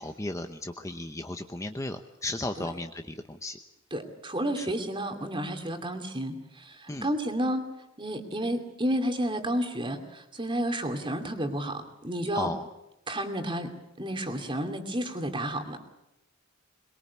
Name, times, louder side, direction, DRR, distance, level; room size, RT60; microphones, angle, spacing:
voice 1, 0.0-3.6 4.6-4.7 6.9-7.1 12.3-12.7, left 2 dB, 15° left, 7 dB, 0.9 m, -35 dB
voice 2, 3.9-7.7 8.0-12.5 13.1-13.7 14.0-15.8, right 1 dB, 25° right, 6 dB, 2.6 m, -31 dB
23.0 x 22.0 x 8.4 m, 0.90 s
head